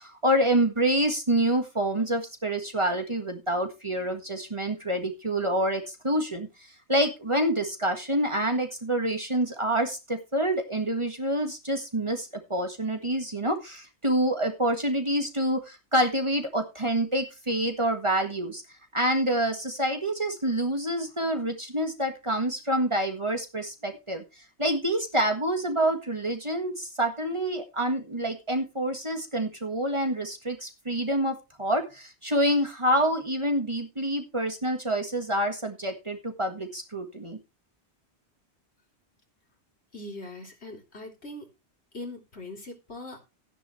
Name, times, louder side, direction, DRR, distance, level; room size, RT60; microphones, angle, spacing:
voice 1, 0.0-18.6 18.9-37.4, right 1 dB, 25° right, 5 dB, 1.7 m, -27 dB
voice 2, 39.9-41.5 41.9-43.2, left 2 dB, 75° left, 1 dB, 3.7 m, -41 dB
13.5 x 10.0 x 3.2 m, 0.27 s
omnidirectional pair, 1.1 m